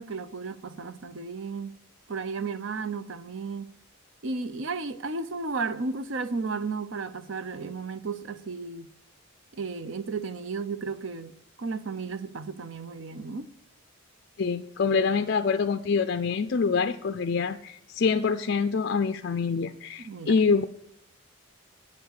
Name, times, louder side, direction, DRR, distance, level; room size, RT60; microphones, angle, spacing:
voice 1, 0.0-1.7 2.1-3.7 4.2-8.9 9.5-11.3 11.6-13.5 20.0-20.3, right 4 dB, 70° right, 0.7 m, -34 dB
voice 2, 14.4-20.6, left 5 dB, 50° left, 0.4 m, -25 dB
9.4 x 8.0 x 6.5 m
head